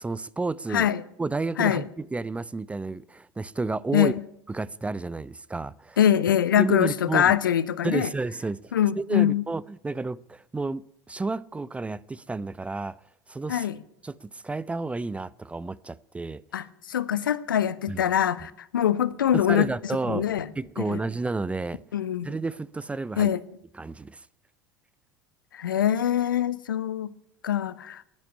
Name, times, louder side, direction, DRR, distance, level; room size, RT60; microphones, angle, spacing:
voice 1, 0.0-0.9 1.2-4.1 4.5-6.0 6.6-7.3 7.8-13.0 13.3-13.7 14.0-16.4 17.9-18.0 19.3-21.8 22.2-23.3 23.8-24.2, right 3 dB, 10° right, 0.5 m, -31 dB
voice 2, 0.7-1.0 1.6-1.9 3.9-4.2 6.0-8.1 8.7-9.4 13.5-13.8 16.5-19.7 20.1-20.5 20.8-21.0 21.9-22.3 23.2-23.4 25.5-27.1 27.4-28.0, left 10 dB, 75° left, 0.8 m, -23 dB
11.0 x 10.5 x 9.7 m
figure-of-eight pair, 75°, 11 cm